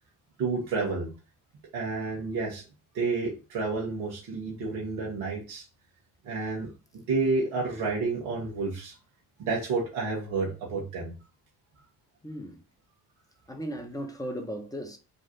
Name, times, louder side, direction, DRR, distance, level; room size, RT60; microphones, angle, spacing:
voice 1, 0.4-1.1 1.7-2.6 2.9-5.6 6.2-6.7 7.1-8.9 9.4-11.1, right 3 dB, 80° right, 1.3 m, -30 dB
voice 2, 12.2-12.6 13.5-15.0, equal, 5° left, 1.2 m, -36 dB
4.0 x 2.4 x 4.2 m
hypercardioid pair, 45°, 48 cm